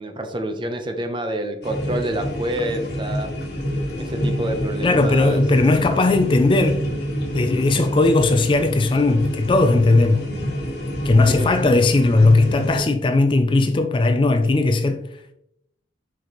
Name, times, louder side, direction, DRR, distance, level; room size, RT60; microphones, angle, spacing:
voice 1, 0.0-3.3 4.0-5.4 11.2-11.5, right 1 dB, 25° right, 0.7 m, -27 dB
sound 1, 1.6-12.8, equal, 60° left, 1.6 m, -27 dB
voice 2, 4.8-6.8 7.3-10.2 11.0-15.0, left 2 dB, 25° left, 0.3 m, -17 dB
6.3 x 5.1 x 3.0 m
head